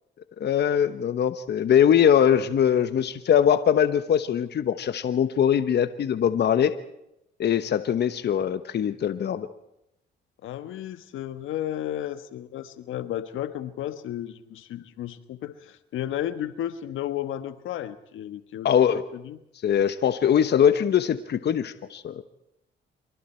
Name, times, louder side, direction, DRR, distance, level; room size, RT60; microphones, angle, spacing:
voice 1, 0.4-6.7 7.4-9.5 18.6-19.0 19.6-22.2, left 9 dB, 55° left, 11 dB, 1.1 m, -22 dB
voice 2, 10.4-18.7 19.1-19.4, left 11 dB, 80° left, 11 dB, 1.4 m, -33 dB
26.0 x 24.0 x 4.5 m, 0.82 s
cardioid pair, 90°, 20 cm